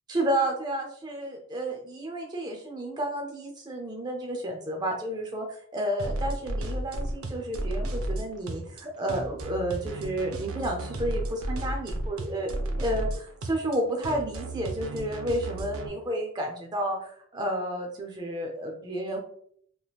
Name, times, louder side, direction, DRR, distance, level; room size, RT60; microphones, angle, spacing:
voice 1, 0.1-19.2, right 1 dB, 20° right, 1 dB, 0.4 m, -31 dB
sound 1, 6.0-15.9, right 1 dB, 80° right, 0.5 m, -33 dB
3.4 x 2.9 x 2.3 m, 0.63 s
head